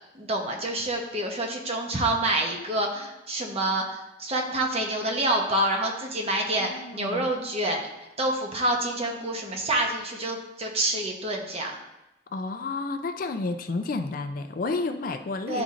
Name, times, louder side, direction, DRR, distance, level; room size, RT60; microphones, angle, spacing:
voice 1, 0.1-7.8 8.2-11.7 15.5-15.6, right 1 dB, 35° right, 1 dB, 0.9 m, -27 dB
voice 2, 6.6-7.3 12.3-15.6, left 3 dB, 50° left, 8 dB, 0.4 m, -31 dB
10.5 x 4.1 x 2.5 m, 0.94 s
head